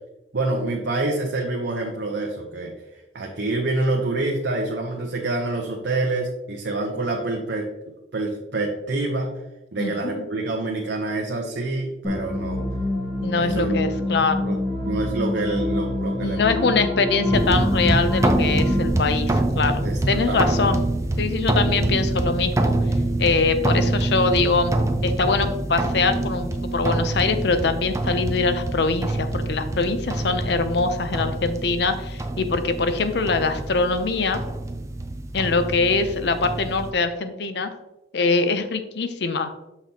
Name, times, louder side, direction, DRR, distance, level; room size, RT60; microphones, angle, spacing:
voice 1, 0.3-2.7 3.1-7.7 8.1-9.3 9.7-12.6 13.3-14.0 14.4-14.6 14.8-16.6 19.8-20.5, right 2 dB, 75° right, 0 dB, 0.8 m, -27 dB
voice 2, 9.8-10.2 13.2-14.4 16.2-20.8 21.2-22.7 23.2-24.7 25.0-34.4 35.3-37.7 38.1-39.7, left 4 dB, 70° left, 9 dB, 0.6 m, -23 dB
sound 1, 12.0-18.9, left 1 dB, 15° left, 2.3 m, -26 dB
sound 2, 17.3-36.9, right 2 dB, 15° right, 0.4 m, -25 dB
6.9 x 5.8 x 2.8 m, 0.94 s
head